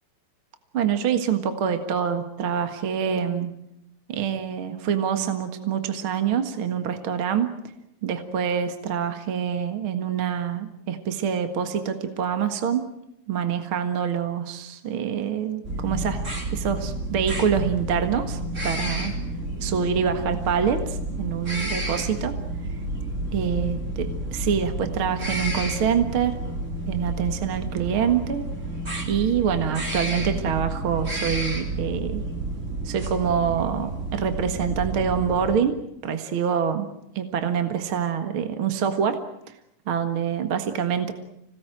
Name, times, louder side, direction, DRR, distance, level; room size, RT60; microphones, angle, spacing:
voice 1, 0.7-3.5 4.1-7.5 8.0-12.9 13.3-16.2 16.5-19.1 19.6-22.3 23.3-24.0 24.3-26.3 26.9-28.4 29.1-32.2 32.9-35.7 36.0-36.9 37.2-39.2 39.9-41.1, right 7 dB, 50° right, 8 dB, 2.2 m, -25 dB
sound 1, 15.6-35.6, right 1 dB, 25° right, 3.7 m, -30 dB
26.0 x 18.5 x 9.1 m, 0.79 s
omnidirectional pair, 3.6 m